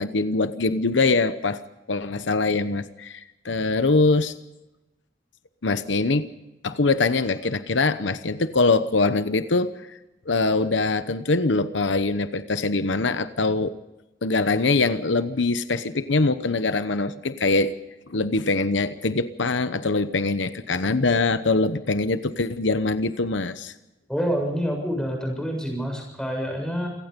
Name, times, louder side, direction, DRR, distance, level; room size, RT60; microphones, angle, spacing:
voice 1, 0.0-1.6 1.9-4.3 5.6-6.3 6.6-10.0 10.3-13.7 14.2-17.7 18.1-23.7, left 3 dB, 80° left, 12 dB, 0.9 m, -23 dB
voice 2, 24.1-26.9, equal, 5° left, 1 dB, 7.4 m, -27 dB
28.0 x 17.5 x 5.3 m, 0.98 s
head